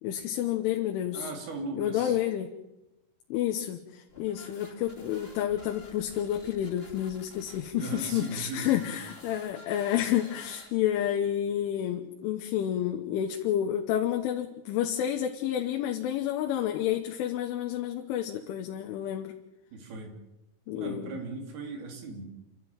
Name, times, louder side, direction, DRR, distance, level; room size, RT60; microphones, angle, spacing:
voice 1, 0.0-1.3 1.8-2.5 3.3-19.4 20.7-21.2, left 11 dB, 85° left, 4 dB, 3.7 m, -30 dB
voice 2, 1.1-2.2 7.7-8.8 19.7-20.1 20.7-22.3, right 3 dB, 60° right, 3 dB, 4.8 m, -38 dB
sound 1, 4.1-11.1, left 1 dB, 20° left, 1.6 m, -50 dB
29.0 x 12.5 x 9.1 m, 0.96 s
omnidirectional pair, 5.4 m